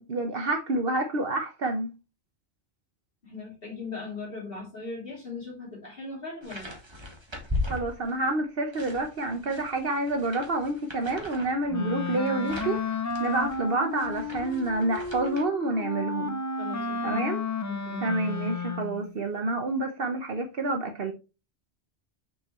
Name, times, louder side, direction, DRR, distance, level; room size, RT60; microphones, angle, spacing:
voice 1, 0.0-1.9 7.7-16.4 17.0-17.4 18.0-21.1, right 2 dB, 60° right, 1.1 m, -28 dB
voice 2, 3.2-6.8 16.6-17.2 17.7-18.1, left 3 dB, 55° left, 3.3 m, -39 dB
sound 1, 6.4-8.3 8.7-15.4, left 2 dB, 25° right, 1.6 m, -38 dB
Wind instrument woodwind instrument, 11.7-19.1, left 4 dB, 30° left, 0.3 m, -33 dB
6.4 x 6.1 x 3.1 m
omnidirectional pair, 1.1 m